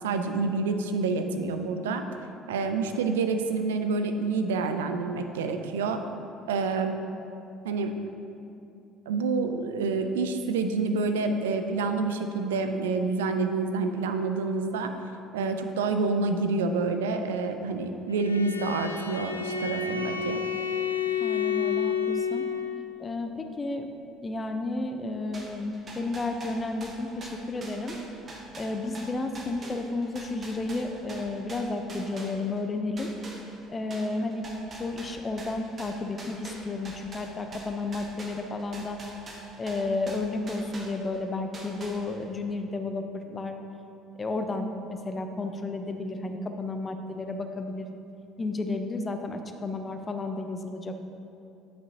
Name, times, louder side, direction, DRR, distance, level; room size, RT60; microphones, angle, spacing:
voice 1, 0.0-2.0 2.5-6.0 6.5-6.9 7.6-7.9 9.1-14.9 15.3-20.4, right 4 dB, 75° right, 7 dB, 0.3 m, -28 dB
Bowed string instrument, 18.1-22.8, left 7 dB, 90° left, 0.3 m, -30 dB
voice 2, 21.2-22.5 23.0-23.9 24.2-28.0 28.5-33.1 33.7-39.0 39.6-43.6 44.2-47.9 48.4-51.0, left 2 dB, 25° left, 6 dB, 0.6 m, -32 dB
sound 1, 25.3-32.7 33.0-41.2 41.5-42.4, right 2 dB, 35° right, 1.0 m, -44 dB
9.6 x 5.3 x 2.8 m, 2.7 s
figure-of-eight pair, 60°, 0 cm